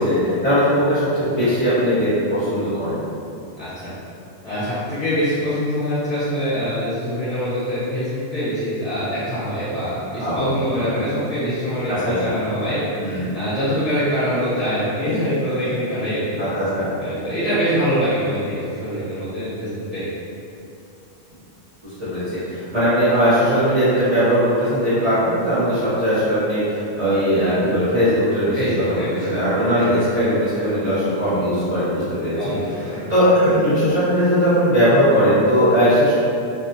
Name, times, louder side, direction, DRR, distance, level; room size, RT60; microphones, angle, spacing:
voice 1, 0.0-3.0 10.2-10.5 12.0-12.3 13.0-13.3 16.4-16.9 22.0-22.2 22.5-28.6 28.9-32.5 33.1-36.1, equal, 30° right, -14 dB, 0.8 m, -19 dB
voice 2, 3.6-3.9 4.4-12.8 13.0-16.4 17.0-20.1 28.5-30.0 32.4-33.0, equal, 40° left, -12 dB, 0.6 m, -24 dB
2.5 x 2.3 x 2.6 m, 2.6 s
omnidirectional pair, 1.3 m